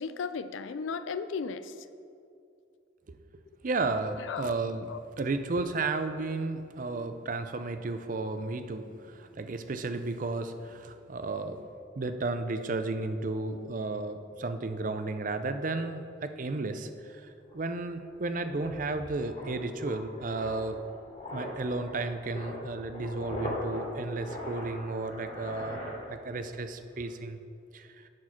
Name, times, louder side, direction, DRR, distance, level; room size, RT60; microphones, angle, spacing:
voice 1, 0.0-1.8 4.2-4.6 4.9-5.0, left 5 dB, 85° left, 12 dB, 0.4 m, -35 dB
voice 2, 3.6-4.9 5.2-11.6 12.0-20.8 21.3-25.8 26.1-27.4 27.7-28.1, right 3 dB, 45° right, 9 dB, 0.5 m, -33 dB
sound 1, 17.1-17.2 17.5-26.6 26.8-27.1, left 1 dB, 35° left, 2.4 m, -40 dB
10.5 x 4.8 x 5.8 m, 2.5 s
head